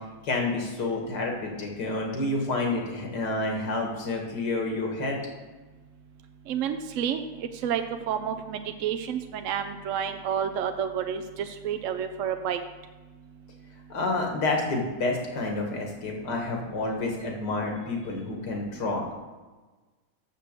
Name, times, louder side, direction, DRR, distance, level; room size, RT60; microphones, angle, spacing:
voice 1, 0.2-5.2 13.9-19.1, left 2 dB, 85° left, 1 dB, 2.2 m, -29 dB
voice 2, 6.5-7.2 7.6-12.6, right 8 dB, 65° right, 7 dB, 0.8 m, -30 dB
7.1 x 6.6 x 6.7 m, 1.3 s
omnidirectional pair, 1.7 m